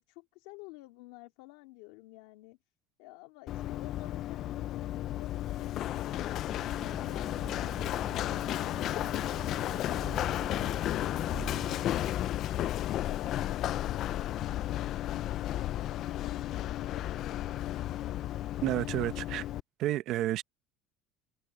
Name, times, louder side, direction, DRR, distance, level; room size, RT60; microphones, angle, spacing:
voice 1, 0.0-2.6 3.0-10.2 10.6-11.6 12.1-17.7, left 21 dB, 80° left, 2.2 m, -51 dB
Run, 3.5-19.6, left 13 dB, 40° left, 0.4 m, -33 dB
Idling, 6.5-12.6, right 3 dB, 10° right, 5.3 m, -46 dB
voice 2, 18.6-19.4 19.8-20.4, right 14 dB, 50° right, 0.8 m, -30 dB
cardioid pair, 155°, 0 cm